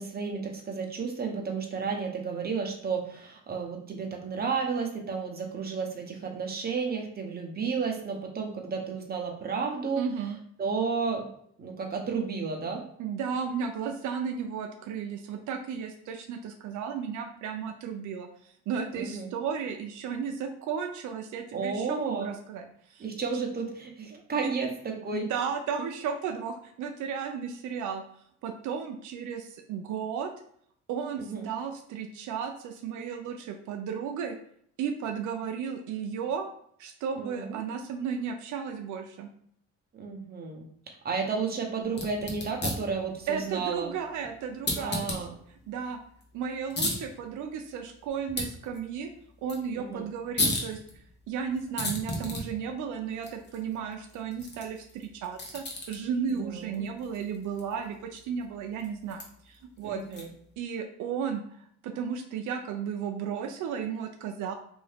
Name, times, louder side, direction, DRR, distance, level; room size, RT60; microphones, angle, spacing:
voice 1, 0.0-10.1 10.6-11.3 11.6-12.8 18.9-19.3 21.5-22.3 23.0-25.3 31.2-31.5 37.2-37.6 39.9-43.9 44.8-45.3 49.8-50.1 56.3-56.9 59.8-60.3, right 5 dB, 30° right, 1 dB, 0.8 m, -32 dB
voice 2, 10.0-10.4 13.0-23.0 25.1-28.0 28.4-30.3 30.9-34.4 34.8-36.5 36.8-39.3 43.3-45.1 45.7-46.0 46.3-49.1 49.4-50.8 51.3-60.3 60.6-61.4 61.8-64.5, right 7 dB, 80° right, 4 dB, 0.5 m, -34 dB
sound 1, 41.9-60.5, left 2 dB, 35° left, 1.0 m, -37 dB
2.7 x 2.6 x 3.4 m, 0.65 s
cardioid pair, 90°, 30 cm